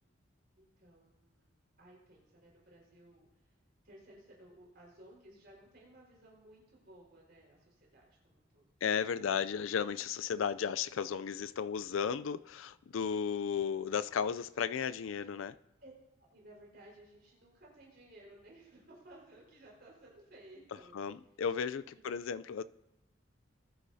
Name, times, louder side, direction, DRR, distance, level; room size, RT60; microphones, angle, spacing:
voice 1, 0.6-1.5 1.8-3.6 3.8-8.6 15.8-15.9 16.2-20.9 21.9-22.1, right 1 dB, 50° right, 4.6 m, -58 dB
voice 2, 8.8-15.6 20.9-22.6, left 7 dB, 80° left, 0.4 m, -34 dB
20.5 x 11.5 x 2.7 m
head